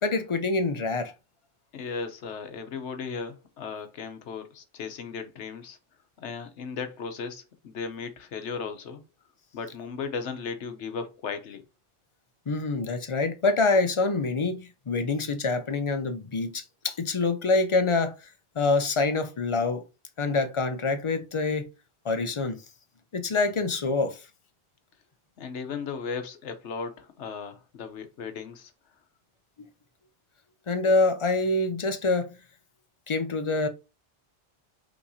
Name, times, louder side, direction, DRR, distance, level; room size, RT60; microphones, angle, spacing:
voice 1, 0.0-1.1 12.5-18.3 18.6-19.8 20.2-21.7 22.0-22.6 23.1-24.3 30.7-32.4 33.1-33.7, left 3 dB, 40° left, 0.5 m, -26 dB
voice 2, 1.7-5.8 6.2-9.0 9.5-11.6 25.4-28.7, left 5 dB, 85° left, 1.1 m, -36 dB
5.6 x 3.1 x 2.7 m
omnidirectional pair, 1.2 m